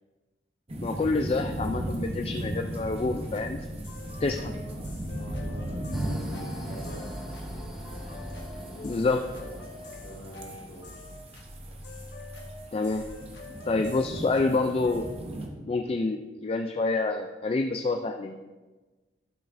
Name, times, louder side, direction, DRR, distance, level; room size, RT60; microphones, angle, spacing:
sound 1, 0.7-15.5, right 1 dB, 35° right, 0.9 m, -37 dB
voice 1, 0.8-3.6 4.2-4.6 8.8-9.2 12.7-13.1 13.7-15.1 15.6-18.4, left 3 dB, 35° left, 5 dB, 0.3 m, -27 dB
sound 2, 3.3-15.2, left 2 dB, 80° left, 1.2 m, -44 dB
voice 2, 4.0-7.8 8.6-9.6 10.0-10.9, equal, 55° left, -4 dB, 2.4 m, -47 dB
sound 3, 5.9-10.9, equal, ahead, 1.2 m, -42 dB
11.5 x 6.3 x 2.6 m, 1.2 s
head